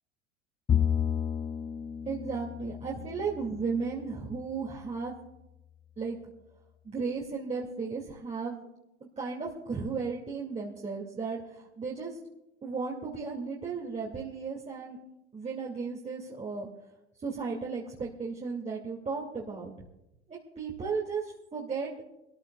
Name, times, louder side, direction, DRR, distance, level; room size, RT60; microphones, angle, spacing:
Bowed string instrument, 0.7-4.2, left 9 dB, 15° left, 0.4 m, -31 dB
voice 1, 2.1-5.1 6.0-6.2 6.8-8.6 9.2-11.4 11.8-12.1 12.6-15.0 15.3-16.7 17.2-19.7 20.3-21.2 21.5-21.9, right 5 dB, 20° right, -4 dB, 2.6 m, -34 dB
26.0 x 14.0 x 2.4 m, 0.90 s
hypercardioid pair, 80°, 33 cm